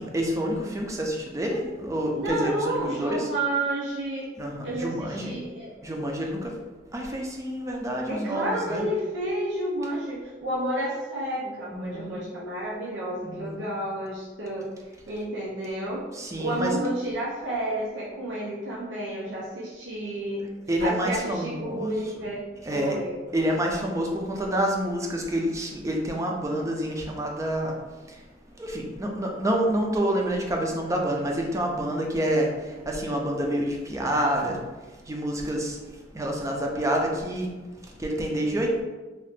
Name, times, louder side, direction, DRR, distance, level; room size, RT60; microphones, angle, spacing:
voice 1, 0.0-3.3 4.4-5.3 5.8-6.5 6.9-8.8 11.7-12.2 13.2-13.6 16.1-16.8 20.7-22.3 22.6-23.0 23.3-27.7 28.0-28.3 28.6-34.6 34.9-38.8, right 1 dB, 15° right, 0 dB, 0.4 m, -28 dB
voice 2, 2.2-4.3 4.6-5.7 8.1-14.7 15.1-16.1 16.4-20.4 20.8-22.4 22.7-23.2, right 1 dB, 90° right, -6 dB, 0.6 m, -30 dB
2.7 x 2.4 x 3.4 m, 1.2 s
head